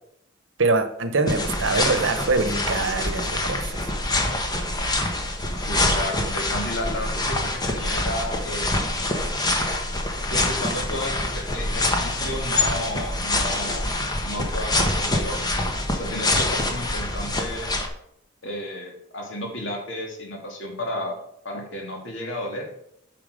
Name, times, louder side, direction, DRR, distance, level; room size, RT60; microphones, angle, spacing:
voice 1, 0.6-3.6, right 3 dB, 80° right, 9 dB, 1.0 m, -23 dB
sound 1, 1.3-17.9, left 2 dB, 20° left, 1.1 m, -25 dB
voice 2, 5.6-8.8 10.2-13.9 14.2-17.7 18.4-21.2 21.4-22.7, left 1 dB, 75° left, 1 dB, 2.4 m, -32 dB
8.9 x 5.8 x 5.1 m, 0.76 s
head